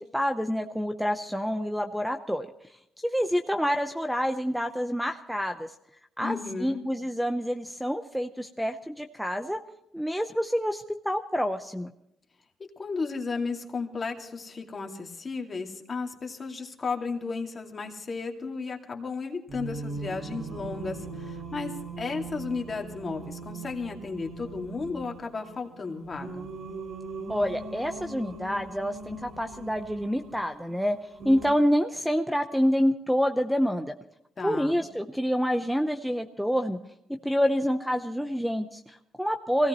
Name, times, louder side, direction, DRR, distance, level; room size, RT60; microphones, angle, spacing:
voice 1, 0.0-2.5 3.0-5.7 6.2-9.6 9.9-11.9 27.3-31.0 31.2-33.9 34.4-36.8 37.2-39.7, equal, ahead, 6 dB, 0.8 m, -27 dB
voice 2, 6.2-6.8 12.8-26.5 34.4-34.8, left 4 dB, 35° left, 2 dB, 2.3 m, -34 dB
Singing, 19.5-31.6, right 3 dB, 55° right, 7.7 m, -40 dB
23.5 x 17.0 x 3.1 m, 0.79 s
cardioid pair, 90°, 0 cm